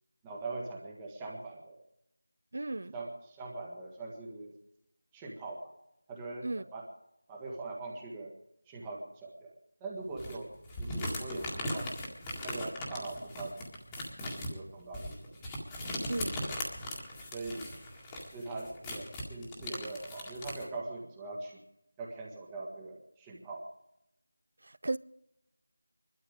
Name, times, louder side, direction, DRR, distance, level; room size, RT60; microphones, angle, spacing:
voice 1, 0.2-1.8 2.9-4.5 5.1-5.7 6.1-6.9 7.3-8.4 8.7-9.5 9.8-10.5 10.8-11.9 12.4-13.6 14.2-15.2 16.4-16.5 17.3-17.7 18.3-21.6 22.0-23.7, right 2 dB, 10° right, 1.6 m, -42 dB
voice 2, 2.5-2.9 6.4-6.6 16.1-16.4 24.6-25.0, right 2 dB, 55° right, 0.5 m, -35 dB
sound 1, 10.2-20.6, left 1 dB, 10° left, 1.9 m, -39 dB
21.5 x 12.5 x 5.1 m
figure-of-eight pair, 170°, 0 cm